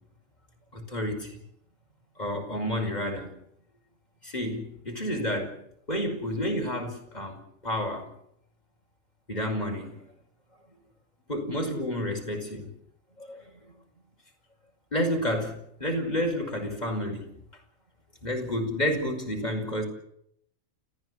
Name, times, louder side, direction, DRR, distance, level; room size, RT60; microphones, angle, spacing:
voice 1, 0.7-1.3 2.2-3.3 4.2-5.5 5.9-7.4 7.6-8.1 9.3-9.9 11.3-12.7 13.2-13.4 14.9-17.3 18.2-19.8, left 1 dB, 30° left, 2 dB, 5.7 m, -30 dB
30.0 x 14.5 x 8.2 m, 0.73 s
omnidirectional pair, 1.4 m